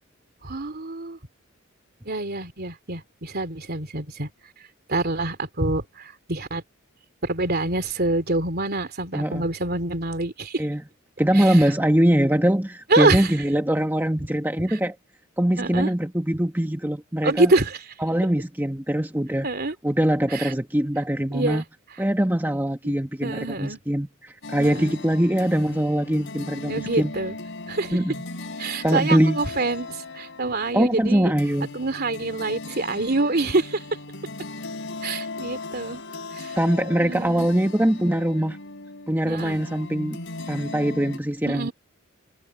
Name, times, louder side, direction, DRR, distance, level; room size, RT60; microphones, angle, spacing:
voice 1, 0.4-1.2 2.0-4.3 4.9-6.6 7.2-10.6 11.3-11.6 12.9-13.3 15.6-15.9 17.2-17.8 19.4-19.7 20.3-20.5 21.3-21.6 22.8-22.9 23.2-23.8 24.6-25.0 26.7-27.4 27.7-28.0 28.6-31.3 31.7-33.8 35.0-36.0 36.3-36.5 37.0-37.5 39.2-39.6 41.5-41.7, right 2 dB, 50° right, 3.2 m, -26 dB
voice 2, 9.1-9.5 10.6-10.8 11.2-14.9 15.4-17.5 18.0-19.5 19.8-21.6 22.0-27.1 27.9-28.2 28.8-29.4 30.7-31.7 36.5-38.6 39.1-40.2 40.5-41.7, right 1 dB, 10° right, 1.5 m, -22 dB
sound 1, 24.4-41.2, left 3 dB, 60° left, 4.2 m, -38 dB
head